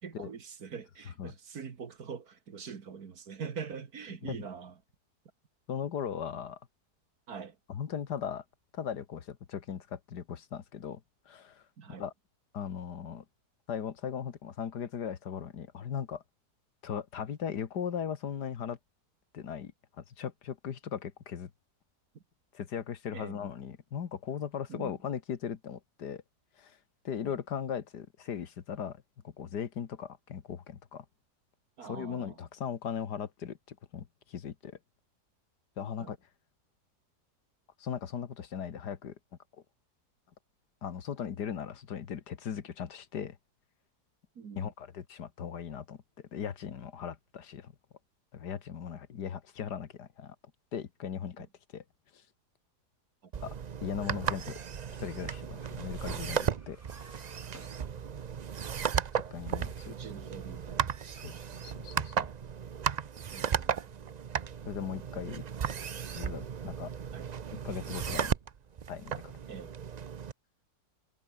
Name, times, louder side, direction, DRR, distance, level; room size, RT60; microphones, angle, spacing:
voice 1, 0.0-4.7 7.3-7.6 11.8-12.1 22.1-22.2 23.1-23.5 24.7-25.0 31.8-32.4 36.0-36.1 44.4-44.7 53.2-53.3 59.9-61.6 63.3-64.1 67.1-67.3 69.5-69.7, right 6 dB, 65° right, 2.2 m, -44 dB
voice 2, 5.7-6.6 7.7-8.4 8.7-11.6 12.0-12.1 12.5-13.3 13.7-16.2 16.8-18.8 19.3-19.7 20.0-21.5 22.5-26.2 26.6-26.8 27.0-31.1 31.8-34.8 35.8-36.2 37.8-39.2 40.8-43.4 44.6-46.0 46.3-47.7 48.3-50.4 50.7-51.5 51.7-51.8 52.1-52.2 53.4-53.6 53.8-54.6 55.0-56.8 59.1-59.9 61.2-62.3 64.7-65.4 66.1-66.9 67.6-68.3 68.9-69.3, left 8 dB, 85° left, 2.0 m, -38 dB
sound 1, 53.3-70.3, right 7 dB, 90° right, 0.3 m, -35 dB
sound 2, 56.5-58.5, equal, 10° left, 6.0 m, -57 dB
omnidirectional pair, 1.7 m